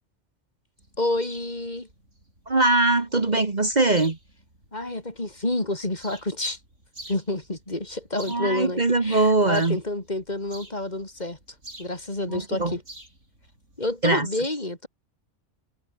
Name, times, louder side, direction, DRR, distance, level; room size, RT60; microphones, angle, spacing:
sound 1, 0.8-14.3, right 1 dB, 90° right, 8.5 m, -50 dB
voice 1, 1.0-1.9 4.7-6.6 7.1-11.4 11.8-12.8 13.8-14.9, left 1 dB, 35° left, 3.5 m, -29 dB
voice 2, 2.5-4.2 8.3-9.8 12.3-12.8 14.0-14.3, right 2 dB, 35° right, 1.8 m, -21 dB
omnidirectional pair, 1.2 m